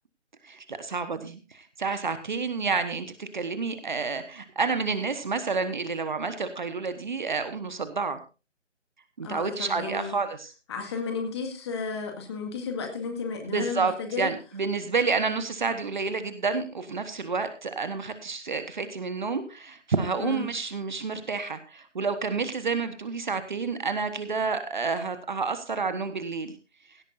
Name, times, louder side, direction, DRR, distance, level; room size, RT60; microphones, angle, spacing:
voice 1, 0.4-8.2 9.2-10.5 13.5-26.5, right 4 dB, 40° right, 11 dB, 1.2 m, -29 dB
voice 2, 9.2-10.2 10.7-14.3 20.2-20.5, left 4 dB, 20° left, 4 dB, 2.0 m, -33 dB
16.5 x 13.0 x 2.6 m, 0.32 s
figure-of-eight pair, 150°, 36 cm